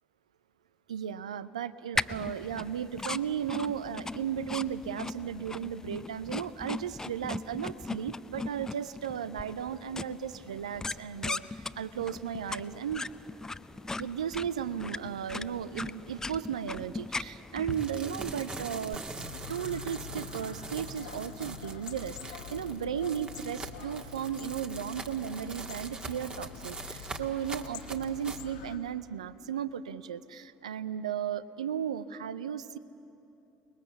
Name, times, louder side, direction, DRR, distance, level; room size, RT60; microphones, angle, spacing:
voice 1, 0.9-13.1 14.0-19.0 19.5-32.8, right 8 dB, 80° right, 16 dB, 0.5 m, -35 dB
sound 1, 1.9-18.9, left 3 dB, 15° left, 0.6 m, -39 dB
sound 2, 17.7-28.5, right 3 dB, 25° right, 1.9 m, -43 dB
sound 3, 19.2-28.8, left 7 dB, 70° left, 1.2 m, -46 dB
29.5 x 21.0 x 7.1 m, 2.9 s
figure-of-eight pair, 60°, 4 cm